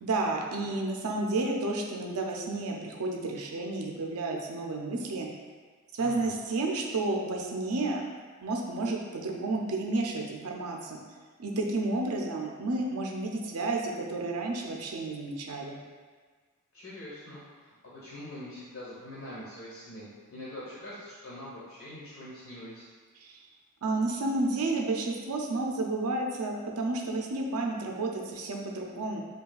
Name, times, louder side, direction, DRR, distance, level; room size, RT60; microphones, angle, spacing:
voice 1, 0.0-5.3 5.9-8.0 8.4-11.0 11.4-15.8 23.2-23.4 23.8-29.2, right 2 dB, 70° right, 1 dB, 0.5 m, -31 dB
voice 2, 6.0-6.3 16.7-22.9, left 1 dB, 70° left, -10 dB, 1.2 m, -44 dB
5.3 x 2.3 x 2.4 m, 1.5 s
head